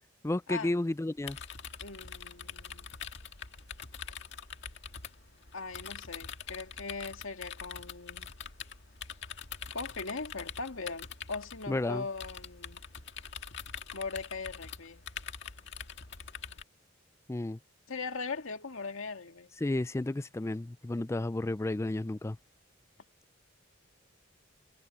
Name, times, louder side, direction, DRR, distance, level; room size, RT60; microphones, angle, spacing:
voice 1, 0.2-1.4 11.7-12.1 17.3-17.6 19.6-22.4, left 2 dB, 15° left, 0.4 m, -32 dB
sound 1, 1.2-16.6, left 7 dB, 60° left, 1.9 m, -44 dB
voice 2, 1.8-2.9 5.5-8.3 9.7-12.8 13.9-15.0 17.9-19.5, left 4 dB, 85° left, 2.0 m, -40 dB
head